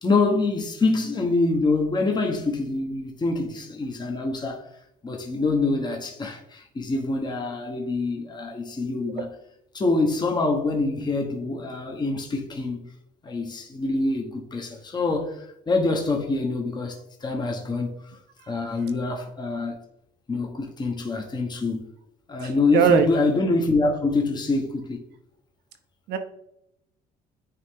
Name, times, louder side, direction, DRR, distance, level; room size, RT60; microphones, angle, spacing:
voice 1, 0.0-4.6 5.0-9.3 9.7-12.9 13.2-18.1 18.5-19.8 20.3-21.8 22.3-25.0, left 3 dB, 25° left, 1.1 m, -25 dB
voice 2, 22.4-23.1 26.1-26.2, right 6 dB, 80° right, 0.9 m, -20 dB
9.6 x 3.2 x 3.7 m
cardioid pair, 110°, 17 cm